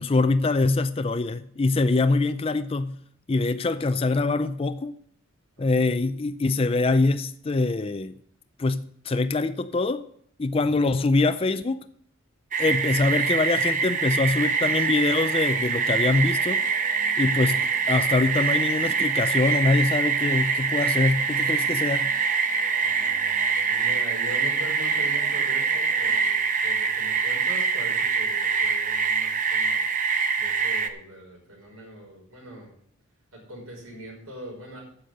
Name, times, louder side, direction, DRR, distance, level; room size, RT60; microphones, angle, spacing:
voice 1, 0.0-3.0 3.3-5.0 5.6-8.1 8.6-10.1 10.4-11.8 12.6-16.6 17.2-17.6 17.9-22.1, left 3 dB, 25° left, 0.4 m, -24 dB
voice 2, 5.6-6.0 10.6-10.9 17.3-17.6 22.8-29.9 30.4-32.7 33.3-34.8, right 1 dB, 75° right, 5.3 m, -42 dB
sound 1, 12.5-30.9, right 5 dB, 35° right, 0.8 m, -24 dB
sound 2, 14.4-26.3, equal, 10° right, 1.7 m, -49 dB
9.9 x 6.8 x 7.7 m
head